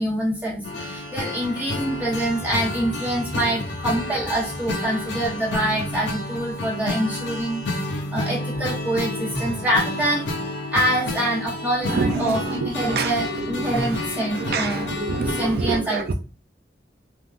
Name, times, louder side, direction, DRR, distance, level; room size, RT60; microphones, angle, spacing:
voice 1, 0.0-7.6 8.1-10.3 10.7-16.1, right 1 dB, 10° right, 1.0 m, -25 dB
sound 1, 0.6-15.5, left 2 dB, 80° left, 0.7 m, -30 dB
voice 2, 11.9-13.9 14.4-16.1, right 3 dB, 60° right, 0.4 m, -26 dB
3.4 x 2.4 x 2.4 m
head